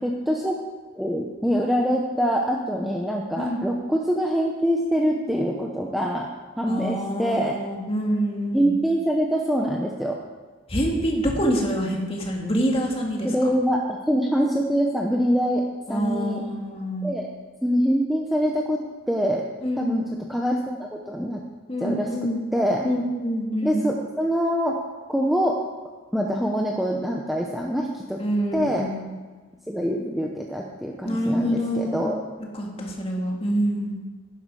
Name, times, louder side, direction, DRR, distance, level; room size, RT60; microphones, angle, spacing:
voice 1, 0.0-0.6 0.9-6.3 6.6-7.6 8.5-10.2 13.2-15.6 15.9-16.4 17.0-17.3 17.6-18.8 19.1-19.4 19.8-20.0 20.3-21.4 21.8-22.1 22.5-22.8 23.6-24.8 25.1-25.6 26.1-28.2 28.5-28.9 29.7-32.2, equal, ahead, -1 dB, 0.8 m, -24 dB
voice 2, 6.7-8.7 10.7-13.3 15.9-17.1 19.6-20.1 21.7-22.5 22.8-23.8 28.2-29.0 31.0-32.1 32.5-34.0, equal, 30° left, 0 dB, 2.1 m, -26 dB
11.0 x 11.0 x 4.8 m, 1.4 s
head